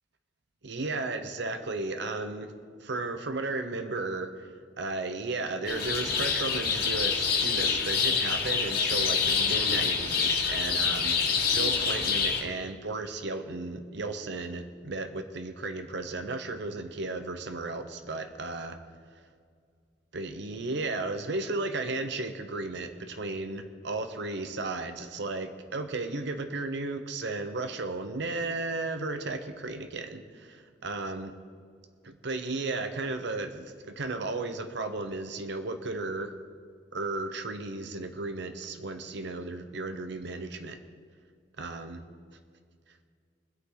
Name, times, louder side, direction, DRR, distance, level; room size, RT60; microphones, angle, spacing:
voice 1, 0.6-2.5 2.8-4.5 4.8-18.8 20.1-31.3 32.0-36.4 36.9-40.8 41.6-42.0, right 3 dB, 70° right, 8 dB, 0.9 m, -34 dB
sound 1, 5.7-12.4, left 5 dB, 55° left, 2.2 m, -26 dB
24.0 x 8.3 x 4.0 m, 2.1 s
head